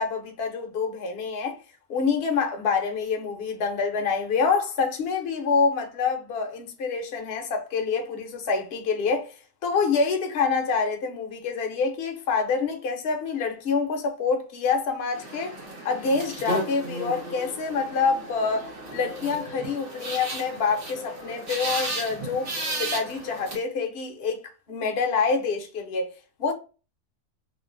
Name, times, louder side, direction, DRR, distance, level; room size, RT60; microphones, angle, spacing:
voice 1, 0.0-1.6 1.9-9.3 9.6-15.5 15.8-24.4 24.7-26.1 26.4-26.5, left 5 dB, 60° left, 0.9 m, -26 dB
sound 1, 15.1-23.6, right 1 dB, 65° right, 1.4 m, -34 dB
3.0 x 2.4 x 2.5 m
omnidirectional pair, 1.3 m